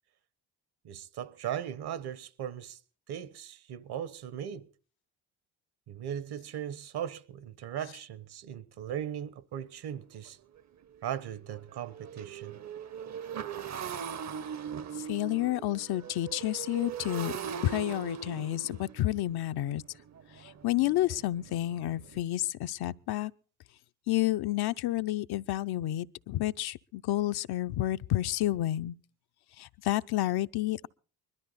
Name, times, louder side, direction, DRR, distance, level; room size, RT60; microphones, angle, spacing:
voice 1, 0.8-2.8 3.1-4.7 5.9-10.4 11.0-12.6, right 9 dB, 65° right, 1.3 m, -38 dB
Motorcycle, 9.6-9.7 10.1-10.3 10.6-22.2, right 8 dB, 40° right, 0.8 m, -41 dB
voice 2, 15.1-17.3 17.6-19.8 20.4-23.3 24.1-29.0 29.6-30.9, left 15 dB, 60° left, 0.7 m, -30 dB
21.5 x 13.0 x 4.1 m
supercardioid pair, 60°, 42 cm